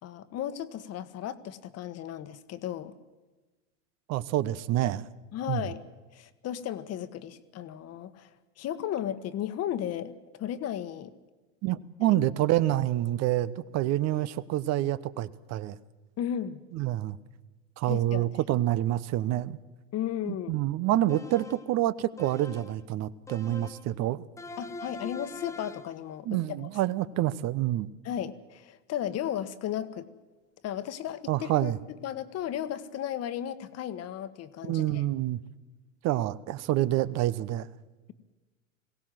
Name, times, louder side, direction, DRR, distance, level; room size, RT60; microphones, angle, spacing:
voice 1, 0.0-2.9 5.3-5.8 6.1-8.3 8.6-10.1 10.4-11.1 12.0-12.2 16.2-16.6 17.9-18.3 19.9-20.6 24.6-26.7 28.0-30.1 30.6-35.0, left 10 dB, 40° left, 13 dB, 1.4 m, -35 dB
voice 2, 4.1-5.1 5.5-5.7 11.6-15.8 16.7-17.2 17.8-19.6 20.2-24.2 26.2-27.9 31.3-31.8 34.6-35.4 36.0-37.7, right 14 dB, 40° right, 17 dB, 0.9 m, -27 dB
sound 1, 21.1-21.7 22.2-22.8 23.3-23.9 24.4-26.0, left 2 dB, 10° left, 1.3 m, -43 dB
21.5 x 17.0 x 7.8 m, 1.2 s
hypercardioid pair, 90°, 39 cm